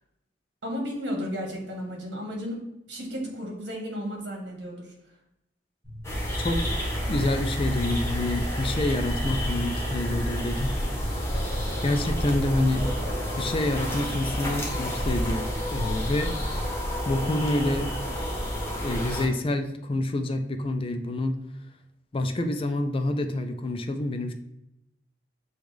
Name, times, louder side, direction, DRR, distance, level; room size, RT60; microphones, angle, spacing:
voice 1, 0.6-4.9, equal, 80° right, 1 dB, 1.3 m, -34 dB
sound 1, 6.0-19.3, equal, 15° left, 1.0 m, -29 dB
voice 2, 7.1-10.7 11.8-12.9 13.4-16.3 17.0-17.9 18.8-21.4 22.1-24.3, left 1 dB, 30° left, 6 dB, 0.4 m, -27 dB
sound 2, 13.0-13.6, equal, 5° right, 1.6 m, -42 dB
7.0 x 2.4 x 3.2 m, 0.86 s
head